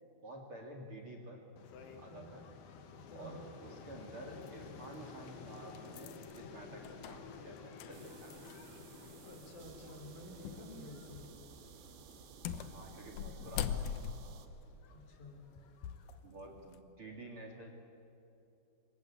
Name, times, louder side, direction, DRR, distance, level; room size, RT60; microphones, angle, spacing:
voice 1, 0.2-1.5 2.0-2.4 3.1-8.6 12.6-13.9 16.2-17.7, right 1 dB, 45° right, 2 dB, 2.0 m, -50 dB
sound 1, 1.6-16.2, left 5 dB, 65° left, 3.4 m, -54 dB
voice 2, 2.1-2.4 3.1-3.4 9.2-11.3 14.9-15.5, left 1 dB, 45° left, 3 dB, 4.9 m, -51 dB
sound 2, 4.5-4.6 5.3-8.8 9.1-9.2 10.4-10.7 11.1-11.4 12.1-16.1 16.6-16.8, left 8 dB, 85° left, 1.8 m, -42 dB
sound 3, 7.9-14.5, right 8 dB, 75° right, 3.7 m, -56 dB
27.5 x 24.0 x 8.6 m, 2.9 s
omnidirectional pair, 5.2 m